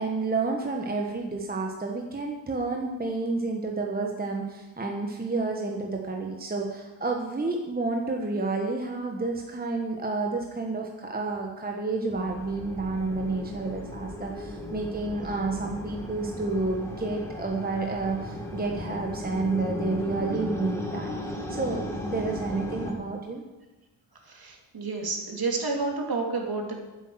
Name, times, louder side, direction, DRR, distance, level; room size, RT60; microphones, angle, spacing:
voice 1, 0.0-21.1 21.5-23.4, right 3 dB, 20° right, 1 dB, 1.2 m, -30 dB
sound 1, 12.2-22.9, left 1 dB, 5° left, 2.1 m, -36 dB
voice 2, 24.3-26.8, right 3 dB, 45° right, 1 dB, 2.6 m, -30 dB
10.0 x 8.3 x 7.8 m, 1.1 s
wide cardioid pair, 120°, 49 cm